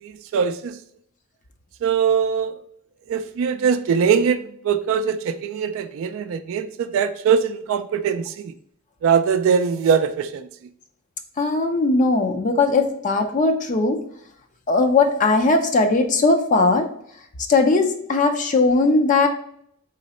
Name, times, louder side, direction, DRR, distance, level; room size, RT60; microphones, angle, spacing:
voice 1, 0.0-0.8 1.8-2.6 3.1-8.5 9.0-10.5, right 6 dB, 65° right, 11 dB, 0.3 m, -22 dB
voice 2, 11.4-14.0 14.7-16.9 17.5-19.3, left 3 dB, 35° left, 5 dB, 0.5 m, -19 dB
3.8 x 3.2 x 4.1 m, 0.70 s
head